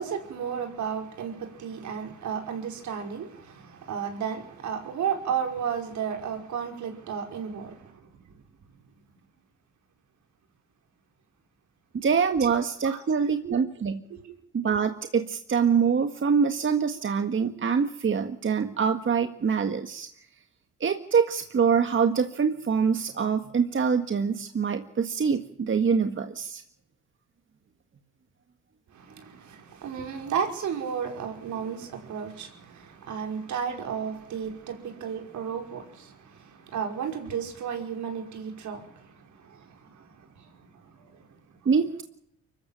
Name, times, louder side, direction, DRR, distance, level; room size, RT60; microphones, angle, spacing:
voice 1, 0.0-8.0 12.8-13.0 13.3-13.6 14.1-14.2 28.9-40.5 40.9-41.2, right 7 dB, 70° right, 5.4 m, -33 dB
voice 2, 11.9-14.0 14.5-20.1 20.8-26.6 41.7-42.0, right 6 dB, 40° right, 1.7 m, -25 dB
24.0 x 14.0 x 9.0 m
cardioid pair, 90°, 30 cm